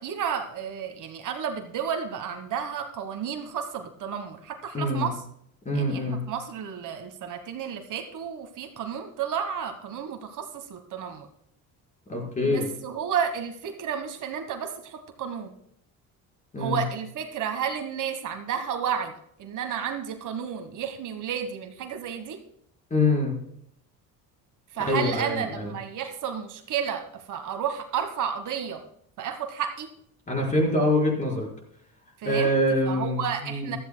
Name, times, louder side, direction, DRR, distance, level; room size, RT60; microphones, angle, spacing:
voice 1, 0.0-5.2 5.7-11.3 12.4-15.5 16.6-19.1 19.4-22.4 24.7-28.8 29.2-29.9 32.2-32.6 32.9-33.8, right 8 dB, 55° right, 6 dB, 1.4 m, -32 dB
voice 2, 4.7-5.1 5.6-6.2 12.1-12.7 16.5-16.8 22.9-23.4 24.8-25.7 30.3-31.5 32.2-33.8, left 1 dB, 20° left, -1 dB, 4.6 m, -25 dB
16.0 x 13.0 x 2.2 m, 0.69 s
cardioid pair, 150°, 36 cm